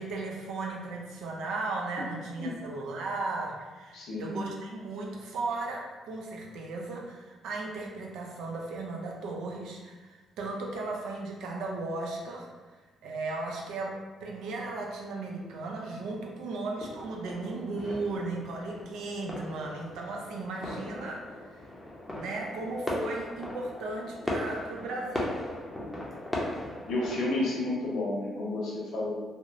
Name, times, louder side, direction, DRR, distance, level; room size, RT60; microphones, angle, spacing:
voice 1, 0.0-12.5 13.0-21.2 21.5-21.6 22.1-25.4, right 3 dB, 85° right, 0 dB, 0.4 m, -36 dB
voice 2, 3.9-4.4 26.9-29.1, left 2 dB, 80° left, -4 dB, 0.8 m, -31 dB
sound 1, 16.8-27.3, left 1 dB, 10° left, 0.6 m, -38 dB
2.9 x 2.0 x 2.4 m, 1.3 s
cardioid pair, 90°, 0 cm